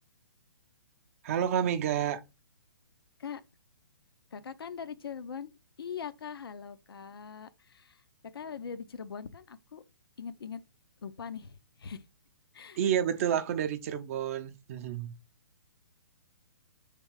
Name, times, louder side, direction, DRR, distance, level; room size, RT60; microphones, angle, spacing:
voice 1, 1.2-2.2 12.8-15.1, right 9 dB, 35° right, 0.6 m, -29 dB
voice 2, 4.3-5.5 5.8-9.8 10.2-10.6 11.0-12.0 12.5-12.8, left 7 dB, 75° left, 0.6 m, -42 dB
3.4 x 3.2 x 4.7 m
hypercardioid pair, 150°, 12 cm